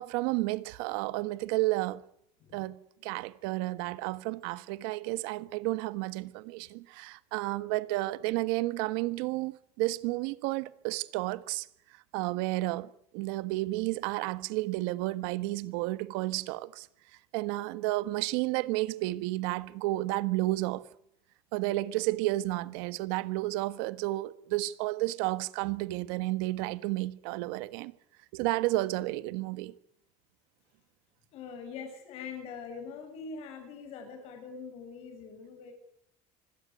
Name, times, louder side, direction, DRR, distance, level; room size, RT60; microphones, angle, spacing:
voice 1, 0.0-2.0 2.5-11.7 12.1-16.9 17.3-20.8 21.5-27.9 28.3-29.7, right 19 dB, 85° right, 1.4 m, -31 dB
voice 2, 31.3-35.7, left 5 dB, 50° left, 7.3 m, -43 dB
25.0 x 17.5 x 9.4 m
cardioid pair, 165°, 13 cm